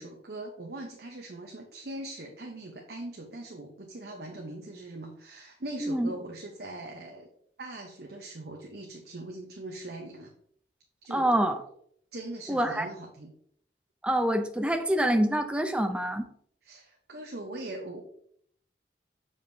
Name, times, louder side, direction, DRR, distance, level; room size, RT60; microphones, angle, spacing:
voice 1, 0.0-7.3 7.6-10.3 11.0-11.3 12.1-13.3 16.6-18.0, right 2 dB, 60° right, 1 dB, 0.8 m, -41 dB
voice 2, 5.8-6.1 11.1-11.6 12.5-12.9 14.0-16.3, right 1 dB, 5° right, 6 dB, 0.5 m, -26 dB
7.2 x 4.8 x 2.7 m, 0.66 s
head